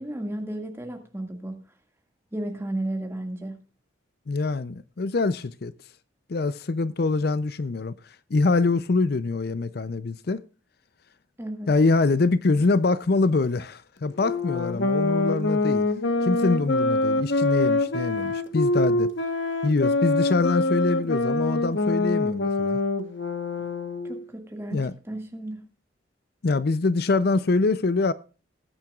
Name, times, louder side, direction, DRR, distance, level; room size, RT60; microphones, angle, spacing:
voice 1, 0.0-1.6 2.3-3.5 11.4-11.7 24.0-25.6, right 1 dB, 15° right, 1.9 m, -33 dB
voice 2, 4.3-5.7 6.3-8.0 8.3-10.4 11.7-15.9 16.2-19.1 19.6-22.8 24.7-24.9 26.4-28.1, left 3 dB, 55° left, 0.5 m, -24 dB
sound 1, 14.2-24.2, left 2 dB, 85° left, 1.2 m, -25 dB
20.0 x 8.9 x 2.4 m
head